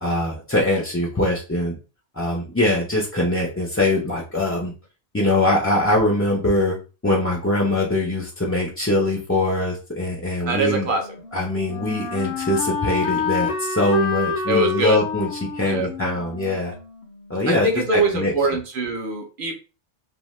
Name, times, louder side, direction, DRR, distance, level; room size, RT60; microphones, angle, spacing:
voice 1, 0.0-1.8 2.2-4.7 5.1-6.8 7.0-10.9 11.3-16.7 17.3-18.3, left 1 dB, 20° left, -2 dB, 0.4 m, -22 dB
voice 2, 10.5-11.1 14.5-15.0 15.6-15.9 17.5-19.5, right 2 dB, 50° right, 3 dB, 0.7 m, -23 dB
Wind instrument woodwind instrument, 10.8-17.7, left 5 dB, 60° left, 0.6 m, -29 dB
2.7 x 2.2 x 3.1 m, 0.32 s
omnidirectional pair, 1.3 m